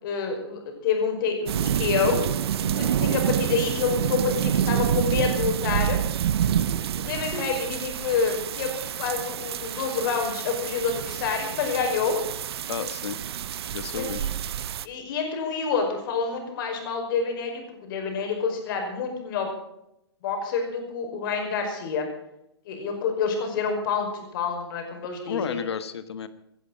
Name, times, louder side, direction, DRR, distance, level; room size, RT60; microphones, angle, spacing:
voice 1, 0.0-2.2 2.6-6.0 7.0-8.7 9.0-12.2 13.9-14.3 14.8-19.5 20.2-22.1 22.7-25.6, left 5 dB, 50° left, 3 dB, 5.2 m, -28 dB
sound 1, 1.5-14.9, right 10 dB, 65° right, 0.7 m, -28 dB
voice 2, 12.7-13.2 13.7-14.2 25.3-26.3, left 8 dB, 75° left, 13 dB, 1.4 m, -32 dB
18.0 x 11.0 x 6.4 m, 0.82 s
hypercardioid pair, 135°, 14 cm